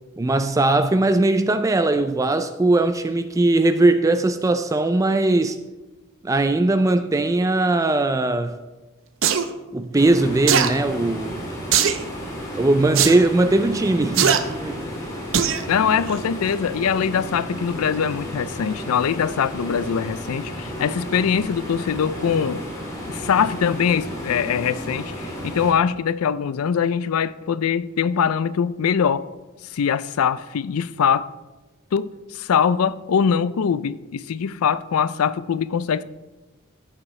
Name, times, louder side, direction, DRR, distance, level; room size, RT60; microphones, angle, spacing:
voice 1, 0.2-5.6 6.2-8.6 9.7-11.4 12.5-14.9, right 2 dB, 15° right, 0.3 m, -20 dB
sound 1, 9.2-9.4 10.5-10.7 11.7-12.0 12.9-13.2 14.1-14.4 15.3-15.6 16.1-16.2, right 8 dB, 60° right, 0.6 m, -19 dB
sound 2, 9.9-25.7, equal, 15° left, 2.1 m, -33 dB
voice 2, 15.7-22.6 23.1-29.3 29.7-31.3 31.9-36.0, left 7 dB, 80° left, 0.4 m, -22 dB
14.0 x 7.4 x 3.2 m
head